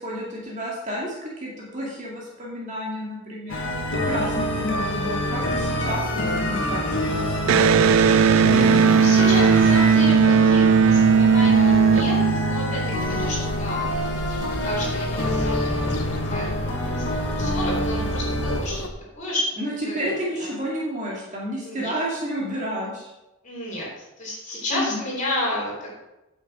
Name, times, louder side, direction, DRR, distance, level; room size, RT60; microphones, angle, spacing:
voice 1, 0.0-3.6 4.1-7.7 19.6-23.1 24.7-25.0, equal, 35° right, -4 dB, 2.2 m, -31 dB
sound 1, 3.5-18.6, left 1 dB, 55° left, 1.6 m, -26 dB
Electric guitar, 7.4-12.9, right 6 dB, 60° right, 0.3 m, -17 dB
voice 2, 8.7-14.0 14.4-15.9 16.3-18.8 19.2-19.5 19.9-20.1 20.4-20.5 21.6-22.0 23.4-23.9 24.2-26.0, left 1 dB, 35° left, -5 dB, 3.7 m, -31 dB
sound 2, 12.9-18.9, left 2 dB, 85° left, 1.1 m, -34 dB
9.3 x 7.4 x 4.9 m, 0.99 s
head